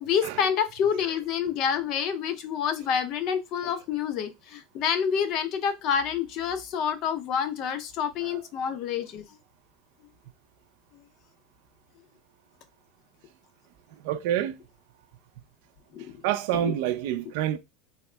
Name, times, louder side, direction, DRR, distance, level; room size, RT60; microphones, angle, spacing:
voice 1, 0.0-9.2 15.9-16.1 16.6-16.7, left 7 dB, 45° left, 0.6 m, -28 dB
voice 2, 14.0-14.6 16.2-17.6, right 12 dB, 70° right, 0.4 m, -27 dB
3.6 x 2.0 x 3.2 m
supercardioid pair, 145°, 0 cm